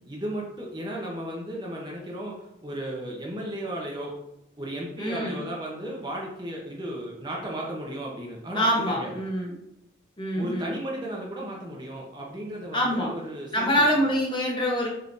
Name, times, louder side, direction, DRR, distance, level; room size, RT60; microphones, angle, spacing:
voice 1, 0.1-4.1 4.6-8.7 9.0-9.1 10.3-14.1, right 1 dB, 25° right, -2 dB, 0.7 m, -35 dB
voice 2, 5.0-5.4 8.5-9.6 10.2-10.7 12.7-13.1 13.5-14.9, equal, 25° left, -2 dB, 0.9 m, -25 dB
4.3 x 3.6 x 2.6 m, 0.83 s
head